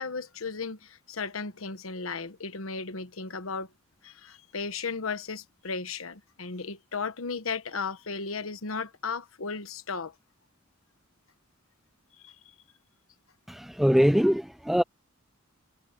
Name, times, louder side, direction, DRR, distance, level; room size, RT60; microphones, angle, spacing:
voice 1, 0.0-3.7 4.0-10.1 12.2-12.4, left 4 dB, 85° left, 1.2 m, -35 dB
voice 2, 13.5-14.8, equal, ahead, 0.3 m, -22 dB
head